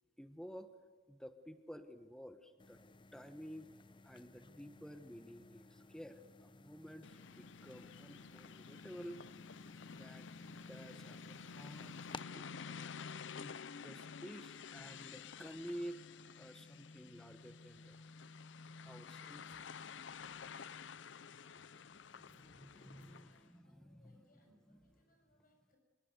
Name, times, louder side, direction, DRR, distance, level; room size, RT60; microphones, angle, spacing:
voice 1, 0.2-0.7 1.1-2.8 3.1-3.7 4.0-9.3 9.8-10.3 10.7-11.9 12.3-12.9 13.3-16.0 16.4-18.0 18.8-20.0 21.5-24.2, equal, 5° left, 9 dB, 1.2 m, -52 dB
sound 1, 2.6-12.2, left 3 dB, 25° left, 0.7 m, -58 dB
sound 2, 7.0-23.5, left 5 dB, 90° left, 0.6 m, -51 dB
voice 2, 22.3-25.8, left 1 dB, 50° left, 3 dB, 6.9 m, -73 dB
25.0 x 22.0 x 8.0 m, 1.6 s
head